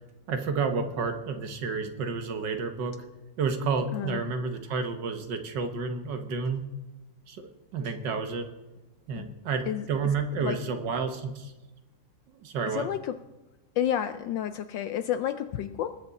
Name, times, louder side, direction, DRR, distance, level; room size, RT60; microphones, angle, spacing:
voice 1, 0.3-2.9 3.4-6.6 7.3-8.5 9.1-11.5 12.4-12.9, right 4 dB, 60° right, 6 dB, 1.5 m, -30 dB
voice 2, 12.7-13.2 13.8-16.0, left 10 dB, 75° left, 11 dB, 1.1 m, -30 dB
20.5 x 7.9 x 4.0 m, 1.1 s
omnidirectional pair, 2.4 m